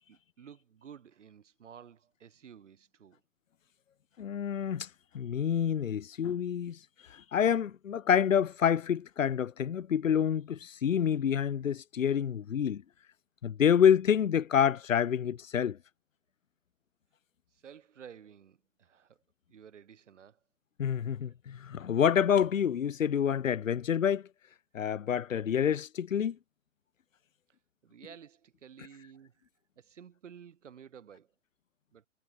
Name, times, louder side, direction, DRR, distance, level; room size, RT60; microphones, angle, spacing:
voice 1, 0.1-3.2 17.5-19.2 19.5-20.4 27.8-29.5 29.7-31.3 31.9-32.0, right 8 dB, 65° right, 5.0 m, -52 dB
voice 2, 4.2-4.9 5.1-6.8 7.1-12.8 13.4-15.8 20.8-24.3 24.7-26.4, left 8 dB, 85° left, 1.0 m, -27 dB
hypercardioid pair, 145°, 38 cm